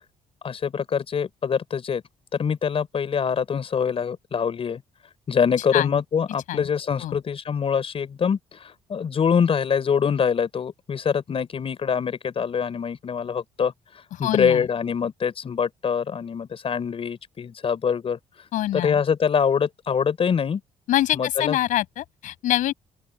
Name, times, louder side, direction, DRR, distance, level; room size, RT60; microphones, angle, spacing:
voice 1, 0.4-2.0 2.3-4.8 5.3-13.7 14.2-18.2 18.7-20.6 21.1-21.6, left 7 dB, 45° left, 5.7 m, -24 dB
voice 2, 14.1-14.7 18.5-19.0 20.9-22.7, left 13 dB, 80° left, 6.8 m, -25 dB
open air
cardioid pair, 90°, 13 cm